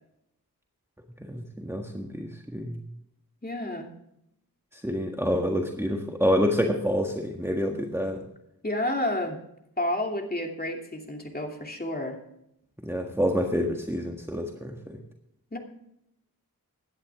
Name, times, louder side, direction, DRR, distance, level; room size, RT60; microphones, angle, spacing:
voice 1, 1.3-2.8 4.7-8.2 12.8-15.0, equal, 5° right, 2 dB, 1.6 m, -27 dB
voice 2, 3.4-3.9 8.6-9.4 9.8-12.2 15.5-15.6, left 1 dB, 25° left, 2 dB, 2.7 m, -30 dB
16.5 x 11.5 x 3.6 m, 0.78 s
wide cardioid pair, 65°, 36 cm